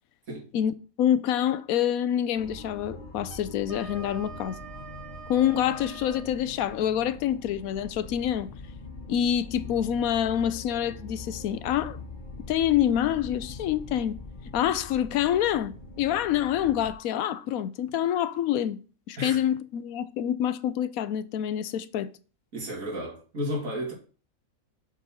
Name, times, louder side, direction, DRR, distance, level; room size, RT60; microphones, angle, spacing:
voice 1, 0.5-4.6 5.3-8.5 9.1-12.0 12.5-14.2 14.5-18.8 19.1-22.1, left 10 dB, 85° left, 1.1 m, -26 dB
sound 1, 2.4-16.9, left 3 dB, 40° left, 1.2 m, -43 dB
Wind instrument woodwind instrument, 3.2-6.3, right 6 dB, 60° right, 1.0 m, -45 dB
voice 2, 22.5-23.9, equal, 75° right, 3.0 m, -32 dB
7.9 x 4.0 x 6.3 m
omnidirectional pair, 1.4 m